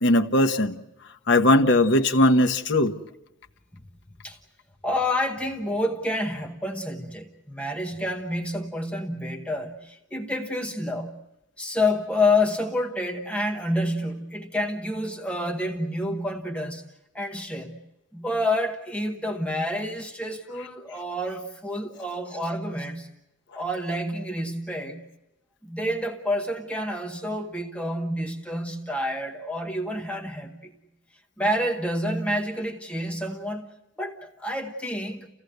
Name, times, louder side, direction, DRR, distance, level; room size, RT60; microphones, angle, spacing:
voice 1, 0.0-0.8 1.3-3.0, left 1 dB, 60° left, 5 dB, 1.2 m, -19 dB
voice 2, 4.8-11.2 11.6-16.8 17.1-17.8 18.1-23.1 23.5-25.0 25.6-30.7 31.4-33.7 34.0-35.3, left 1 dB, 5° left, 2 dB, 1.1 m, -28 dB
30.0 x 16.0 x 8.1 m, 0.97 s
head